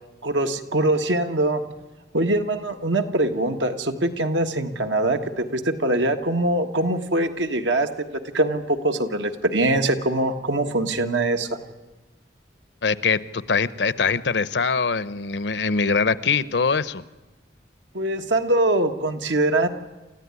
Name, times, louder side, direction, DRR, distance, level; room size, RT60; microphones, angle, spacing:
voice 1, 0.2-1.6 2.1-7.9 8.3-11.5 17.9-19.7, right 2 dB, 85° right, 6 dB, 1.6 m, -23 dB
voice 2, 12.8-17.0, left 5 dB, 75° left, 16 dB, 0.8 m, -23 dB
29.0 x 14.0 x 9.8 m, 1.2 s
head